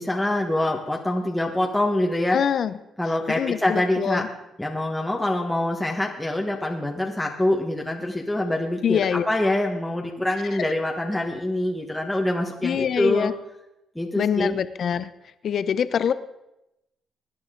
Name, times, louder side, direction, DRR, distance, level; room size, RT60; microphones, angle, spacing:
voice 1, 0.0-2.4 3.0-4.3 4.6-13.3 13.9-14.6, left 1 dB, 5° left, 0 dB, 1.4 m, -25 dB
voice 2, 2.3-2.8 3.4-4.3 8.8-9.3 12.6-13.3 14.2-15.1 15.4-16.1, left 8 dB, 60° left, 13 dB, 0.7 m, -24 dB
20.5 x 9.8 x 3.8 m, 0.90 s
cardioid pair, 90°, 0 cm